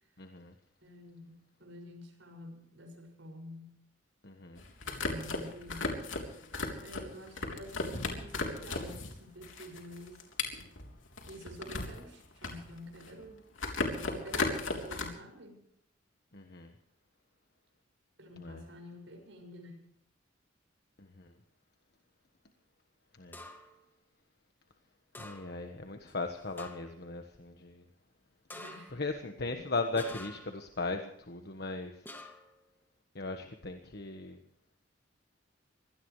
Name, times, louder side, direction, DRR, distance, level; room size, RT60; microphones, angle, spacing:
voice 1, 0.2-0.5 4.2-4.6 16.3-16.7 18.4-18.6 21.0-21.3 23.2-23.4 25.2-27.8 28.9-32.1 33.1-34.4, left 3 dB, 55° left, 5 dB, 1.4 m, -38 dB
voice 2, 0.8-3.8 5.0-6.0 6.8-10.3 11.3-13.5 14.0-15.6 18.2-19.9 28.5-28.9 29.3-29.6, equal, 75° right, 2 dB, 6.4 m, -49 dB
sound 1, 4.6-9.1 9.4-12.0 12.3-13.2 13.6-15.0, left 3 dB, 80° left, 3.5 m, -35 dB
sound 2, 23.3-23.8 25.1-25.7 26.1-26.2 26.6-27.0 28.5-29.1 30.0-30.6 32.1-32.6, left 1 dB, 10° left, 2.2 m, -48 dB
24.0 x 18.0 x 3.3 m, 0.70 s
head